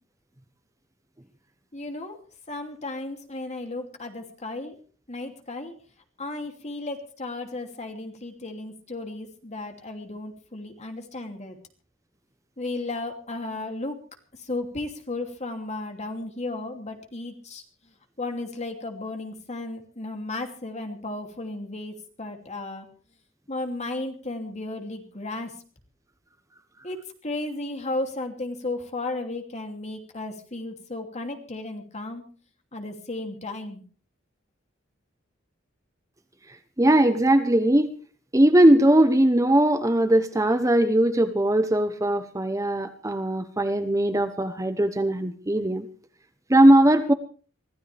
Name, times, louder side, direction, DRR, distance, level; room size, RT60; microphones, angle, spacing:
voice 1, 1.7-2.2 2.5-4.7 5.1-5.7 6.2-11.6 12.6-14.0 14.4-17.6 18.2-22.9 23.5-25.5 26.8-27.0 27.2-32.2 32.7-33.8, left 2 dB, 35° left, 4 dB, 2.9 m, -34 dB
voice 2, 36.8-37.9 38.3-45.9 46.5-47.1, right 1 dB, 15° right, 9 dB, 0.9 m, -20 dB
24.5 x 15.5 x 3.4 m, 0.40 s
head